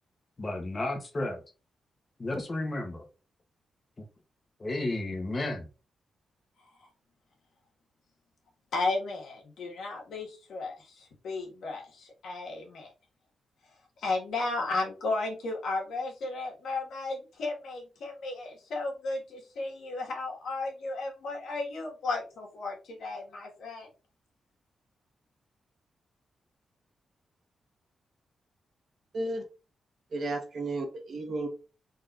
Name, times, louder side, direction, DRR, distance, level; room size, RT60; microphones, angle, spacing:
voice 1, 0.4-1.4 2.2-3.0 4.0-4.1 4.6-5.7, left 2 dB, 25° left, 1.0 m, -32 dB
voice 2, 8.7-12.9 14.0-23.9, left 3 dB, 75° left, 1.8 m, -34 dB
voice 3, 30.1-31.5, right 2 dB, 45° right, 1.3 m, -33 dB
5.1 x 4.0 x 2.6 m
wide cardioid pair, 175°, 0 cm